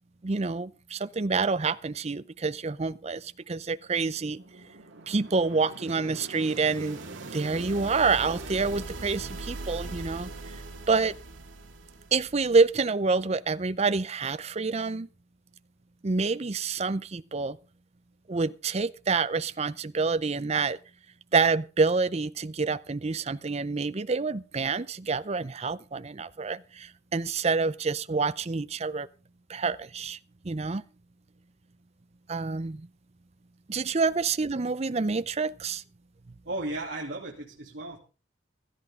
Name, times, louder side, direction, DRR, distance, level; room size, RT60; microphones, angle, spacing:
voice 1, 0.2-4.4 5.1-7.0 7.3-10.6 10.9-11.2 12.1-15.1 16.0-17.6 18.3-20.8 21.3-29.1 29.5-30.2 30.4-30.8 32.3-32.9 33.7-35.8 36.3-36.4, right 4 dB, 35° right, 0.6 m, -27 dB
sound 1, 3.9-12.7, right 2 dB, 85° right, 2.1 m, -41 dB
voice 2, 36.4-38.0, right 2 dB, 65° right, 2.7 m, -35 dB
16.0 x 13.5 x 3.7 m
head